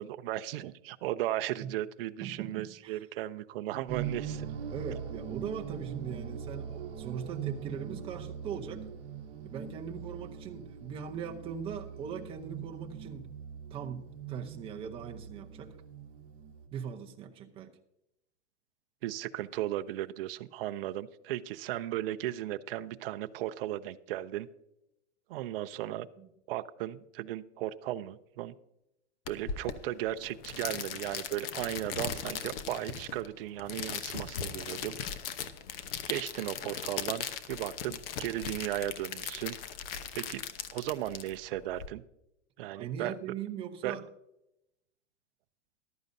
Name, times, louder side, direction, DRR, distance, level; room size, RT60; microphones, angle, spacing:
voice 1, 0.0-4.5 19.0-24.5 25.3-26.1 26.5-28.5 29.3-34.9 36.1-39.6 40.1-40.4 40.7-42.0 42.6-43.1 43.8-44.0, right 14 dB, 55° right, 11 dB, 0.5 m, -36 dB
voice 2, 2.2-3.0 4.7-8.8 9.4-13.3 13.7-15.7 16.7-17.8 26.2-26.3 42.6-44.1, right 7 dB, 15° right, 3 dB, 0.7 m, -40 dB
sound 1, 3.9-16.7, right 8 dB, 30° right, 1.7 m, -41 dB
sound 2, 29.3-41.9, left 8 dB, 55° left, 1.0 m, -39 dB
14.5 x 11.5 x 2.6 m, 0.85 s
supercardioid pair, 160°, 36 cm